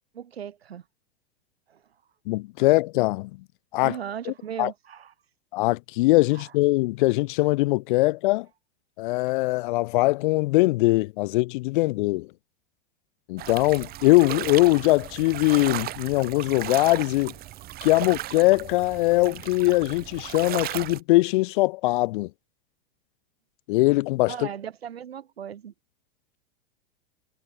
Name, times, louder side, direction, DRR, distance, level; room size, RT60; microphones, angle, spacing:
voice 1, 0.1-0.8 1.7-1.8 3.8-5.1 6.3-6.5 24.3-25.7, right 9 dB, 90° right, 1.6 m, -37 dB
voice 2, 2.3-3.3 3.7-4.0 4.3-4.7 5.5-8.5 9.0-12.3 13.3-17.3 17.8-22.3 23.7-24.5, left 21 dB, 60° left, 0.4 m, -22 dB
sound 1, 13.4-21.0, right 15 dB, 30° right, 0.8 m, -36 dB
hypercardioid pair, 105°, 30 cm